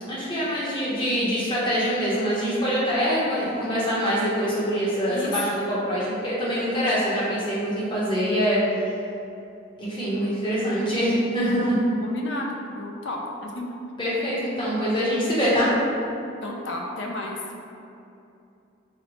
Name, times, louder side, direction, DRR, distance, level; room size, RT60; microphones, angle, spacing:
voice 1, 0.0-8.6 9.8-11.8 14.0-15.7, equal, 25° left, -8 dB, 0.7 m, -24 dB
voice 2, 12.0-13.8 16.4-17.4, left 2 dB, 65° left, 0 dB, 0.4 m, -33 dB
4.1 x 2.0 x 3.0 m, 2.7 s
head